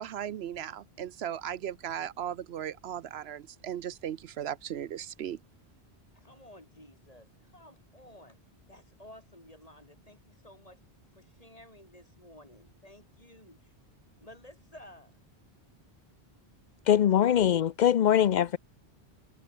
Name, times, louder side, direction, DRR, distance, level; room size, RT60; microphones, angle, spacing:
voice 1, 0.0-5.4, right 10 dB, 75° right, 0.9 m, -37 dB
voice 2, 6.1-8.4 8.7-10.8 11.1-13.7 14.2-15.1, left 1 dB, 35° left, 6.4 m, -53 dB
voice 3, 16.9-18.6, left 10 dB, 55° left, 0.6 m, -22 dB
omnidirectional pair, 1.1 m